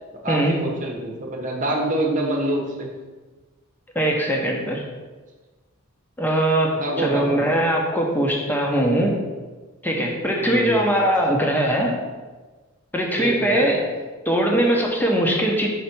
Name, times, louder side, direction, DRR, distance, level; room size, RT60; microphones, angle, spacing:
voice 1, 0.2-2.9 6.7-7.5 10.4-10.8 13.2-13.7, right 1 dB, 35° right, 0 dB, 1.1 m, -26 dB
voice 2, 3.9-4.8 6.2-9.2 9.8-12.0 12.9-13.8 14.2-15.7, right 1 dB, 10° left, -1 dB, 1.0 m, -21 dB
5.7 x 4.2 x 6.0 m, 1.3 s
head